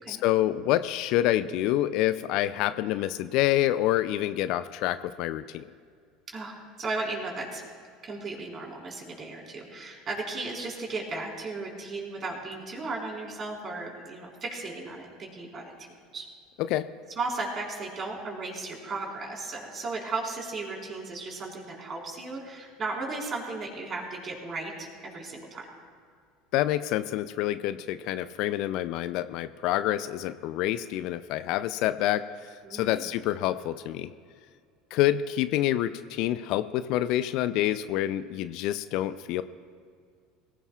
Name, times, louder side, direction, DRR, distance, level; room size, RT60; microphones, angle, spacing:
voice 1, 0.1-5.7 16.6-16.9 26.5-32.3 32.7-34.1 34.9-39.4, left 13 dB, 55° left, 14 dB, 0.4 m, -27 dB
voice 2, 6.3-7.6 8.0-16.3 17.2-25.7 32.6-33.1, right 3 dB, 35° right, -1 dB, 4.4 m, -35 dB
23.5 x 16.5 x 2.4 m, 2.2 s
figure-of-eight pair, 70°, 0 cm